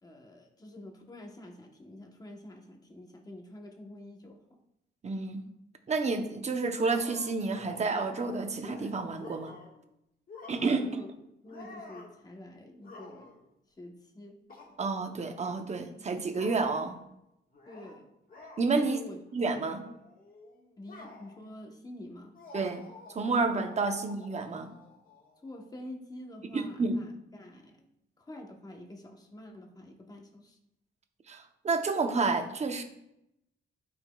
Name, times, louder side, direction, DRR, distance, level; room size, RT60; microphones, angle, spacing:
voice 1, 0.0-4.6 10.8-11.1 11.4-13.3 13.8-14.4 17.7-18.1 18.8-19.2 20.8-22.4 25.4-27.9 28.2-30.6, left 1 dB, 20° left, 2 dB, 1.0 m, -47 dB
voice 2, 5.0-5.5 5.9-9.6 10.5-11.0 14.8-17.0 18.6-19.0 19.3-19.9 22.5-22.8 23.1-24.7 26.5-27.0 31.3-32.8, right 4 dB, 35° right, 6 dB, 0.7 m, -30 dB
sound 1, 6.8-9.8 10.3-11.0 11.5-12.2 12.8-13.5 14.5-14.7 15.4-15.5 16.3-17.0 17.5-18.0 18.3-18.6 19.2-19.4 19.7-21.5 22.3-25.7, left 3 dB, 50° left, 1.6 m, -49 dB
12.0 x 5.1 x 2.3 m, 0.83 s
wide cardioid pair, 135°, 19 cm